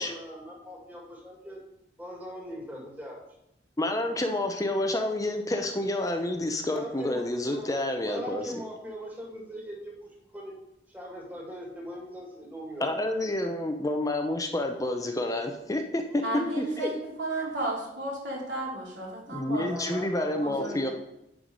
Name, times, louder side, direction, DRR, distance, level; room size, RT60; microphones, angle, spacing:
voice 1, 0.0-1.6 2.0-3.2 6.7-7.7 8.0-10.1 10.3-10.6 10.9-13.1 16.1-16.9 19.6-20.9, equal, 10° right, -2 dB, 2.2 m, -40 dB
voice 2, 3.8-8.5 12.8-16.0 16.6-16.9 19.3-20.9, left 1 dB, 20° left, 5 dB, 0.7 m, -29 dB
voice 3, 16.2-16.9 17.2-19.7 20.3-20.9, right 1 dB, 85° right, -3 dB, 3.2 m, -33 dB
10.0 x 4.7 x 5.3 m, 0.85 s
head